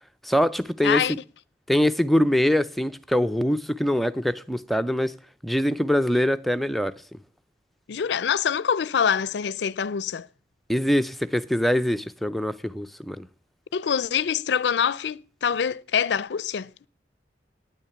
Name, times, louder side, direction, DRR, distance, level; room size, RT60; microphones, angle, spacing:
voice 1, 0.2-1.0 1.7-5.1 5.4-6.9 10.7-13.3, equal, ahead, 0.5 m, -23 dB
voice 2, 0.8-1.2 7.9-10.3 13.7-16.9, left 7 dB, 75° left, 0.4 m, -25 dB
9.3 x 8.9 x 6.8 m
head